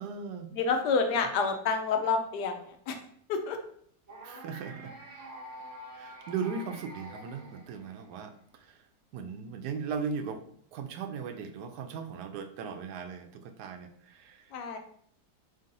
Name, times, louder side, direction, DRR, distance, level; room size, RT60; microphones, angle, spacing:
voice 1, 0.0-0.5 4.2-4.9 5.9-8.8 9.1-10.4 10.7-14.5, right 5 dB, 75° right, 7 dB, 1.1 m, -38 dB
voice 2, 0.5-3.0 3.3-3.6 14.5-14.8, left 5 dB, 80° left, 5 dB, 1.2 m, -28 dB
sound 1, 4.1-8.2, right 1 dB, 50° right, 0.4 m, -47 dB
4.0 x 3.8 x 2.6 m, 0.63 s
omnidirectional pair, 1.8 m